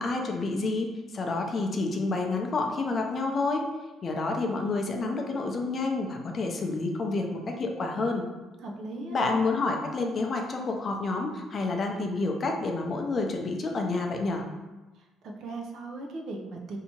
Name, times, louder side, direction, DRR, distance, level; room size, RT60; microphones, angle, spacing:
voice 1, 0.0-3.6 4.0-8.2 9.1-14.4, left 3 dB, 40° left, 3 dB, 0.5 m, -29 dB
voice 2, 8.6-9.2 14.9-16.8, right 2 dB, 65° right, 1 dB, 0.5 m, -38 dB
3.3 x 2.8 x 2.8 m, 1.1 s
cardioid pair, 115°, 0 cm